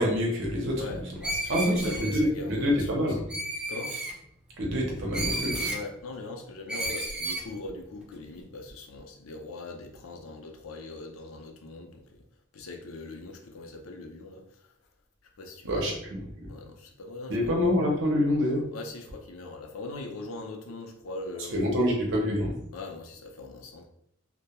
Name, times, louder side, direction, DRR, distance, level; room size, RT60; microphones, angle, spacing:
voice 1, 0.0-1.0 1.5-3.2 4.6-5.6 15.6-16.5 17.3-18.6 21.5-22.5, equal, 60° right, -1 dB, 0.7 m, -26 dB
voice 2, 0.8-3.2 3.7-4.0 5.7-12.2 12.5-14.7 15.4-15.9 16.5-17.5 18.7-21.9 22.7-23.9, left 3 dB, 70° left, 2 dB, 0.5 m, -41 dB
Screech, 1.2-2.2 3.3-4.1 5.1-5.8 6.7-7.5, right 1 dB, 5° right, 0.3 m, -32 dB
2.2 x 2.1 x 2.8 m, 0.71 s
head